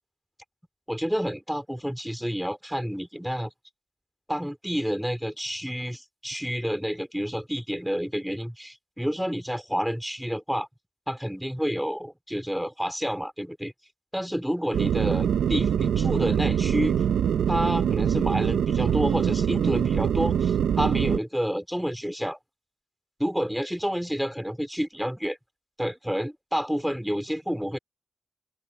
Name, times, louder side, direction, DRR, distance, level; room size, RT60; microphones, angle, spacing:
voice 1, 0.9-3.5 4.3-10.7 11.1-13.7 14.1-17.0 17.5-22.4 23.2-25.4 25.8-27.8, equal, ahead, 4.7 m, -29 dB
sound 1, 14.7-21.2, right 8 dB, 90° right, 1.3 m, -24 dB
open air
cardioid pair, 50°, 0 cm